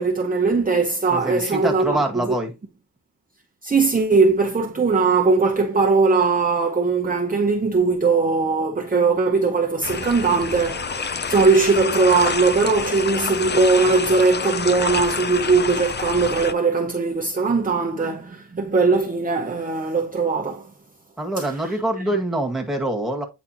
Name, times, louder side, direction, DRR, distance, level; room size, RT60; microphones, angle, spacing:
voice 1, 0.0-2.3 3.6-20.7 21.4-21.7, right 4 dB, 20° right, 0.8 m, -20 dB
voice 2, 1.1-2.5 21.2-23.2, right 1 dB, ahead, 1.8 m, -25 dB
sound 1, 9.8-16.5, left 5 dB, 25° left, 0.5 m, -27 dB
9.0 x 4.1 x 2.9 m
cardioid pair, 90°, 42 cm